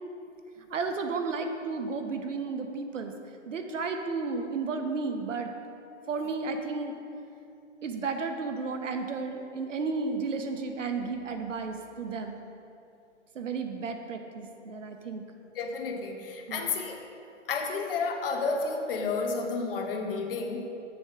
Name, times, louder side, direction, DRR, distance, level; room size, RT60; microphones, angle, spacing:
voice 1, 0.7-3.1 3.5-5.5 6.1-6.9 7.8-12.4 13.3-15.2 16.5-16.8, right 4 dB, 80° right, 5 dB, 0.9 m, -33 dB
voice 2, 15.5-17.0 17.5-20.7, left 4 dB, 50° left, 3 dB, 0.9 m, -31 dB
7.2 x 7.0 x 3.5 m, 2.6 s
hypercardioid pair, 145°, 37 cm